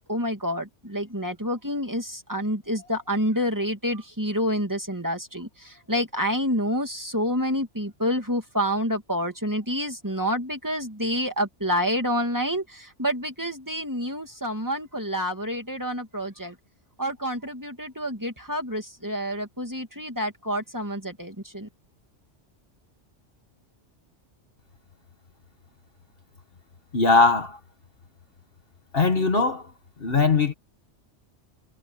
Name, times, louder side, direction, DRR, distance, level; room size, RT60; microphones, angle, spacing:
voice 1, 0.1-16.5 17.0-21.7, equal, 15° right, 2.7 m, -28 dB
voice 2, 26.9-27.6 28.9-29.7 30.0-30.5, left 4 dB, 50° left, 1.6 m, -20 dB
omnidirectional pair, 1.2 m